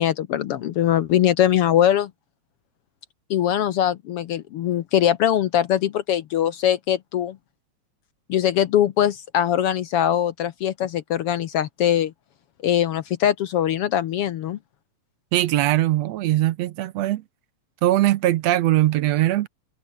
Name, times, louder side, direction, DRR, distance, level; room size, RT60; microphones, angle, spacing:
voice 1, 0.0-2.1 3.3-7.4 8.3-12.1 12.6-14.6, left 10 dB, 65° left, 1.5 m, -21 dB
voice 2, 15.3-17.2 17.8-19.5, right 15 dB, 75° right, 1.8 m, -20 dB
omnidirectional pair, 3.3 m